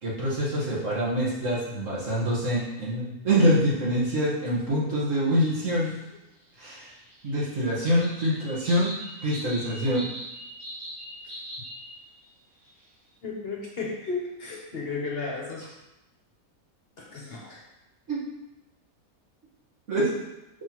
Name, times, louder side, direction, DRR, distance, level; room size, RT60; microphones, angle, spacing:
voice 1, 0.0-6.0 6.6-6.9 7.2-10.1 18.1-18.2 19.9-20.2, equal, 60° right, -6 dB, 1.9 m, -25 dB
sound 1, 6.7-11.9 12.2-12.3 12.6-12.8, equal, 75° right, 2.4 m, -40 dB
voice 2, 13.2-15.7 17.0-17.6, left 4 dB, 50° left, -2 dB, 1.0 m, -34 dB
5.8 x 5.6 x 3.0 m, 0.96 s
omnidirectional pair, 1.5 m